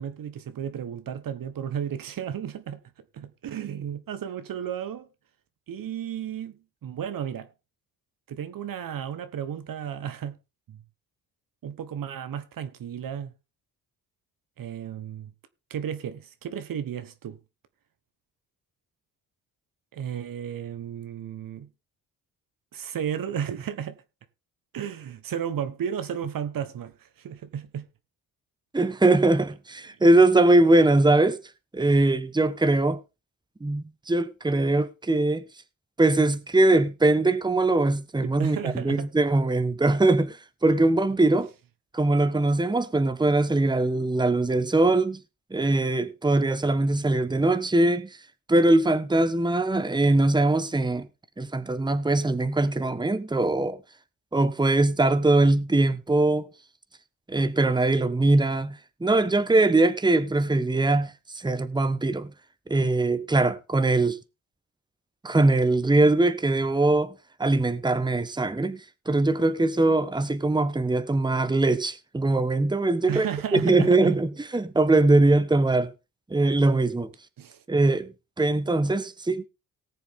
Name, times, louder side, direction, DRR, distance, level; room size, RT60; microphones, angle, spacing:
voice 1, 0.0-2.8 3.1-5.1 5.7-7.5 8.3-10.4 10.7-10.8 11.6-13.3 14.6-15.3 15.7-17.4 19.9-21.7 22.7-24.0 24.7-27.9 38.2-39.1 73.1-74.1 77.4-77.6, right 9 dB, 65° right, 1.3 m, -33 dB
voice 2, 28.7-31.4 31.7-33.0 33.6-35.4 36.0-41.5 41.9-45.2 45.5-48.2 48.5-51.1 51.4-53.8 54.3-56.5 57.3-62.3 62.7-64.2 65.2-73.3 73.5-75.9 76.3-77.1 77.7-79.4, right 2 dB, 10° right, 1.2 m, -22 dB
18.5 x 6.9 x 3.7 m
supercardioid pair, 65°, 37 cm